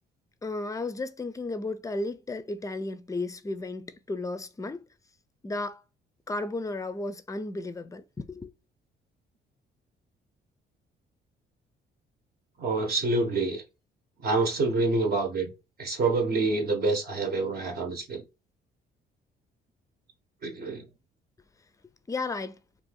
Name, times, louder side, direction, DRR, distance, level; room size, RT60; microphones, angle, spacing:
voice 1, 0.4-4.8 5.4-5.8 6.3-8.5 22.1-22.6, left 2 dB, 15° left, 0.4 m, -34 dB
voice 2, 12.6-13.6 14.2-15.5 15.8-18.2 20.4-20.9, right 3 dB, 50° right, 0.8 m, -27 dB
2.7 x 2.5 x 3.7 m
cardioid pair, 90°, 20 cm